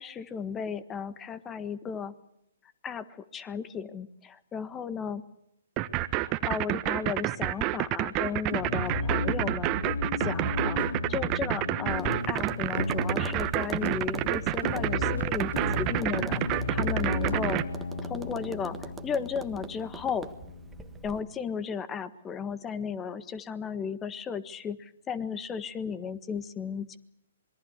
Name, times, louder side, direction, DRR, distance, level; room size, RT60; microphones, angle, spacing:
voice 1, 0.0-2.1 2.8-3.0 3.3-5.2 6.2-9.7 10.2-15.5 15.8-17.6 18.0-20.3 21.0-27.0, left 6 dB, 20° left, 14 dB, 1.6 m, -35 dB
sound 1, 5.8-17.6, right 17 dB, 30° right, 1.3 m, -28 dB
sound 2, 8.5-21.3, left 2 dB, 80° left, 2.6 m, -34 dB
Tap, 11.9-21.2, right 6 dB, 10° right, 1.5 m, -44 dB
26.5 x 22.0 x 8.3 m, 0.78 s
hypercardioid pair, 130°, 0 cm